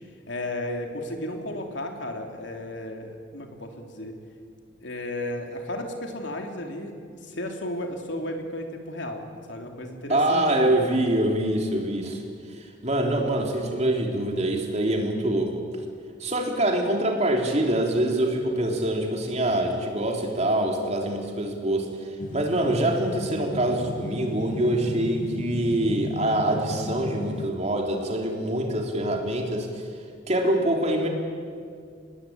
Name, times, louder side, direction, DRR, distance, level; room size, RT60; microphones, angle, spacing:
voice 1, 0.3-4.2 4.8-7.0 7.2-11.1, left 1 dB, 65° left, 3 dB, 3.3 m, -34 dB
voice 2, 10.1-12.2 12.8-15.6 16.2-21.9 22.3-29.7 30.3-31.1, right 1 dB, 35° right, 1 dB, 3.5 m, -25 dB
sound 1, 22.2-27.5, left 1 dB, 40° left, 1.2 m, -35 dB
25.5 x 20.5 x 8.8 m, 2.3 s
head